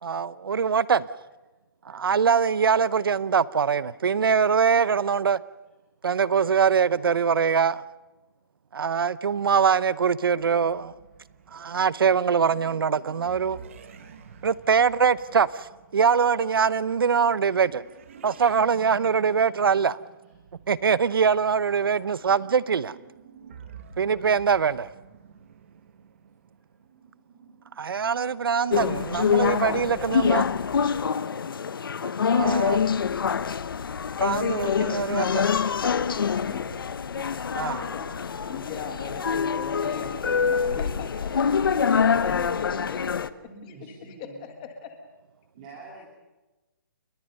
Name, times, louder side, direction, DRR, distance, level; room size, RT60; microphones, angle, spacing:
voice 1, 0.0-1.1 1.9-5.4 6.0-7.8 8.7-10.9 11.5-13.6 14.4-17.8 18.2-20.0 20.7-22.9 24.0-24.9 27.8-30.4 32.0-32.8 34.2-35.5 37.6-37.8, right 6 dB, 85° right, 0.9 m, -23 dB
sound 1, 10.4-27.8, right 7 dB, 35° right, 1.9 m, -50 dB
sound 2, 28.7-43.3, left 6 dB, 75° left, 1.0 m, -25 dB
voice 2, 36.2-36.7 37.5-38.1 38.4-41.3 41.9-43.0 43.9-44.1 44.6-45.0, left 6 dB, 20° left, 1.7 m, -39 dB
voice 3, 43.4-44.7 45.6-46.1, right 3 dB, 20° right, 3.3 m, -47 dB
29.5 x 22.0 x 5.4 m
hypercardioid pair, 180°, 12 cm